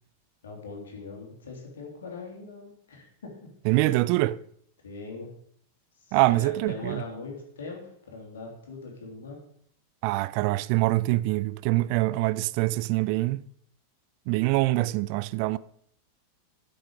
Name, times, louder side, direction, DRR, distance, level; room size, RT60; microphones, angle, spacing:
voice 1, 0.4-3.5 4.8-5.3 6.0-7.8 8.1-9.4, left 4 dB, 65° left, 3.4 m, -41 dB
voice 2, 3.7-4.4 6.1-7.0 10.0-13.4 14.3-15.6, right 19 dB, 45° right, 0.4 m, -24 dB
11.5 x 7.9 x 5.0 m
figure-of-eight pair, 90°, 0 cm